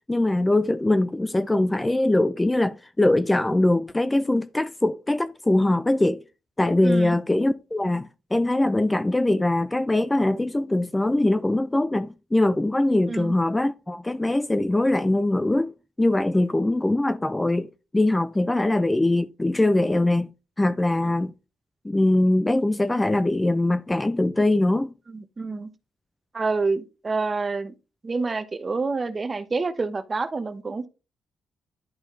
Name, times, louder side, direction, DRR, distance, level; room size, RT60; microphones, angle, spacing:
voice 1, 0.1-6.2 6.6-15.7 16.0-20.3 20.6-21.3 21.8-24.9, left 1 dB, 15° left, 0.4 m, -22 dB
voice 2, 6.8-7.2 13.1-13.3 18.6-18.7 25.1-25.7 26.3-27.7 28.0-30.9, right 3 dB, 30° right, 0.9 m, -28 dB
11.0 x 4.1 x 3.0 m
cardioid pair, 110°, 0 cm